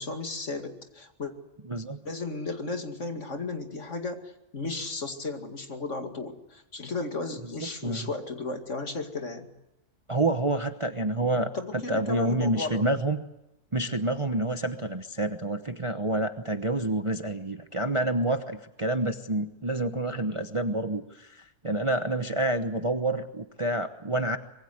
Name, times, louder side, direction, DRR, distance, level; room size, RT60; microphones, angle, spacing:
voice 1, 0.0-1.3 2.0-9.5 11.5-12.8, left 3 dB, 50° left, 5 dB, 2.6 m, -34 dB
voice 2, 1.7-2.0 7.8-8.1 10.1-13.2 13.7-24.4, right 2 dB, 25° right, 7 dB, 0.9 m, -28 dB
25.0 x 22.5 x 8.1 m, 0.88 s
omnidirectional pair, 1.6 m